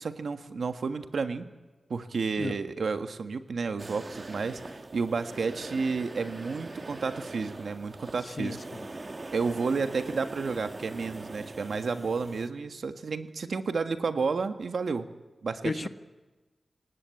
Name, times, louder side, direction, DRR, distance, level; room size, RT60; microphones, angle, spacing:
voice 1, 0.0-1.5 1.9-8.6 9.3-15.1 15.4-15.9, right 4 dB, 80° right, 9 dB, 1.6 m, -31 dB
sound 1, 3.8-12.5, right 2 dB, 35° right, 1.3 m, -42 dB
voice 2, 8.2-8.8 15.6-15.9, left 3 dB, 45° left, 11 dB, 1.2 m, -33 dB
27.0 x 18.5 x 8.5 m, 1.2 s
wide cardioid pair, 105°, 0 cm